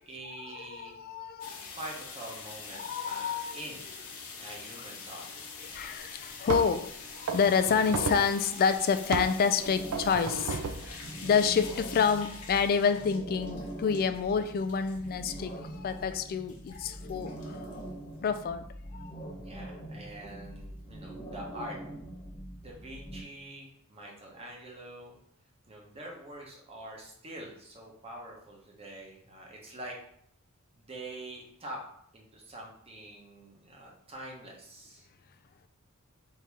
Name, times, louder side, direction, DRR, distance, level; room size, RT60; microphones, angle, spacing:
voice 1, 0.0-0.9 1.7-3.8 4.4-5.2 19.4-21.8 22.6-25.1 25.7-30.0 30.8-31.8 32.1-35.1, right 1 dB, 25° right, -2 dB, 1.0 m, -45 dB
voice 2, 0.5-1.8 2.7-3.6 5.7-10.6 10.9-17.8 18.2-18.7 18.9-19.2, left 6 dB, 45° left, 10 dB, 0.3 m, -28 dB
sound 1, 1.4-18.3, left 5 dB, 80° left, 0.9 m, -46 dB
sound 2, 5.7-5.8 6.5-6.8 7.3-8.4 9.1-9.4 9.9-10.9, right 4 dB, 90° right, 0.4 m, -33 dB
sound 3, 9.6-23.2, right 1 dB, 15° left, 0.9 m, -43 dB
3.8 x 2.8 x 4.7 m, 0.68 s
head